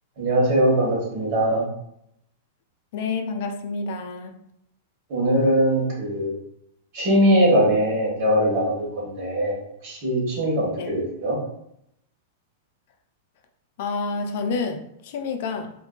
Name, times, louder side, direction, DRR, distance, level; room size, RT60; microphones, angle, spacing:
voice 1, 0.2-1.6 5.1-6.3 6.9-9.5 9.8-11.4, equal, 55° right, -4 dB, 1.3 m, -21 dB
voice 2, 2.9-4.3 10.7-10.9 13.8-15.7, left 4 dB, 60° left, 5 dB, 0.3 m, -29 dB
2.6 x 2.2 x 2.2 m, 0.77 s
hypercardioid pair, 110°, 0 cm